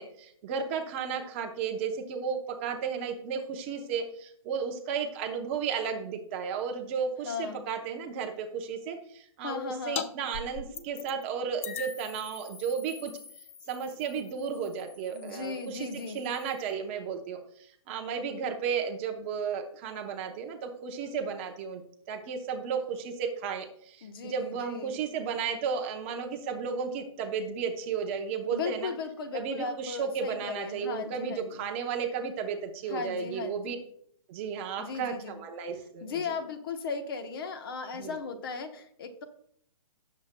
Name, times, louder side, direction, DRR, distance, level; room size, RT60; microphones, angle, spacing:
voice 1, 0.0-13.1 13.7-17.4 17.9-21.8 22.1-28.9 29.3-33.8 34.3-36.3 37.9-38.2, right 6 dB, 20° right, 4 dB, 0.7 m, -34 dB
voice 2, 7.2-7.7 9.4-10.0 15.1-16.2 24.0-24.9 28.5-31.6 32.9-33.8 34.8-35.4 36.0-39.2, left 5 dB, 40° left, 7 dB, 1.0 m, -37 dB
sound 1, 10.0-10.1 10.3-11.2 11.6-16.7, left 7 dB, 25° left, 0.4 m, -42 dB
17.5 x 7.2 x 2.2 m, 0.68 s
hypercardioid pair, 165°, 18 cm